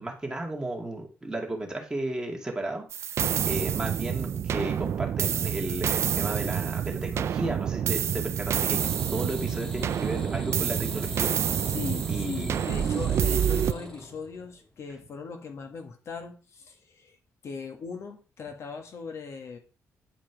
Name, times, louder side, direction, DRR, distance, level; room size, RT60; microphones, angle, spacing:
voice 1, 0.0-2.8 3.4-8.9 9.1-11.3 12.1-12.6, right 2 dB, 15° right, 1 dB, 2.2 m, -34 dB
sound 1, 2.9-13.7, right 9 dB, 55° right, 0.3 m, -28 dB
sound 2, 8.8-14.6 14.9-15.0, left 1 dB, 15° left, 2.1 m, -42 dB
voice 2, 11.7-17.2 17.4-19.6, left 5 dB, 60° left, 4 dB, 1.6 m, -39 dB
9.9 x 5.1 x 4.7 m, 0.36 s
cardioid pair, 120°, 5 cm